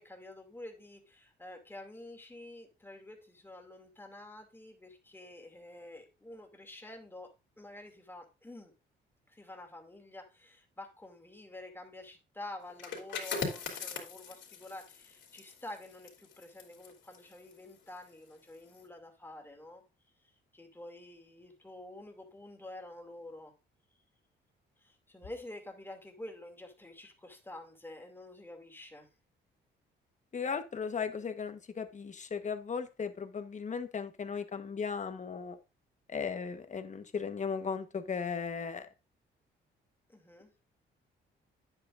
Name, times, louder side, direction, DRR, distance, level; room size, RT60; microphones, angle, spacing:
voice 1, 0.0-7.3 7.6-8.7 9.3-19.8 20.5-23.5 24.8-29.1 40.1-40.5, left 1 dB, 10° left, 3 dB, 2.5 m, -48 dB
sound 1, 12.7-18.2 18.5-18.8, left 5 dB, 65° left, 3.1 m, -41 dB
voice 2, 30.3-35.6 36.1-38.9, left 6 dB, 40° left, 8 dB, 1.2 m, -36 dB
9.7 x 8.1 x 2.6 m, 0.29 s
cardioid pair, 90°, 20 cm